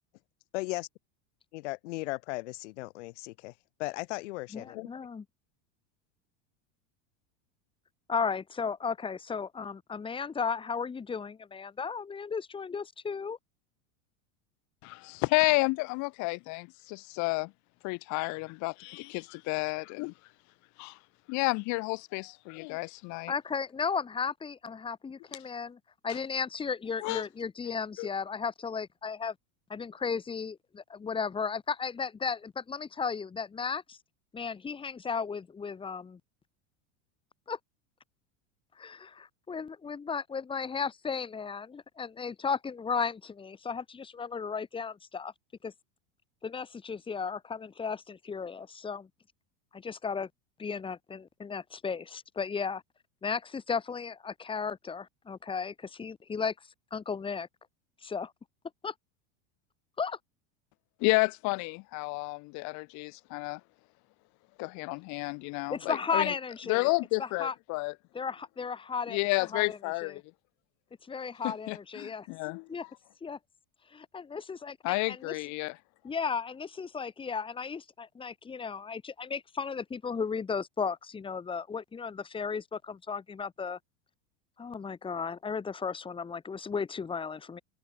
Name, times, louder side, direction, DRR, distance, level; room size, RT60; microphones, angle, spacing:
voice 1, 0.5-0.9 1.5-3.5 3.8-4.9, left 22 dB, 75° left, 3.1 m, -36 dB
voice 2, 4.5-5.2 8.1-13.4 23.3-29.3 29.7-34.0 34.3-36.2 37.5-37.6 38.8-45.3 45.6-45.7 46.4-49.1 49.7-50.3 50.6-52.8 53.2-57.5 58.0-58.3 58.8-58.9 60.0-60.2 65.7-66.9 67.2-67.5 68.1-69.2 69.5-70.1 71.1-72.3 72.7-72.8 73.2-73.4 73.9-75.3 76.0-83.8 84.6-87.6, left 5 dB, 15° left, 4.7 m, -35 dB
voice 3, 14.8-17.5 17.8-20.1 20.8-21.0 21.3-23.3 27.0-27.2 28.0-28.1 61.0-63.6 64.6-66.3 66.7-67.9 69.1-70.2 71.4-72.6 74.8-75.8, left 27 dB, 50° left, 6.8 m, -31 dB
supercardioid pair, 160°, 36 cm